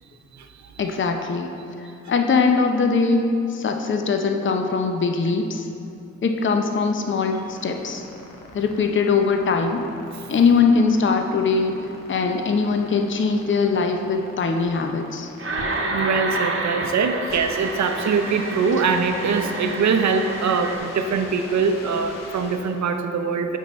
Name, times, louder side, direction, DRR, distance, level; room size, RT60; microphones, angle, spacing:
voice 1, 0.8-1.5 2.1-5.7 6.2-8.1 8.5-9.8 10.3-11.8 12.1-15.3, left 4 dB, 40° left, 4 dB, 0.6 m, -21 dB
sound 1, 7.0-22.9, left 3 dB, 80° left, 0.8 m, -42 dB
sound 2, 15.4-20.8, right 2 dB, 40° right, 1.0 m, -29 dB
voice 2, 15.6-23.6, right 5 dB, 60° right, 6 dB, 0.6 m, -23 dB
9.3 x 3.6 x 4.2 m, 2.7 s
supercardioid pair, 45°, 32 cm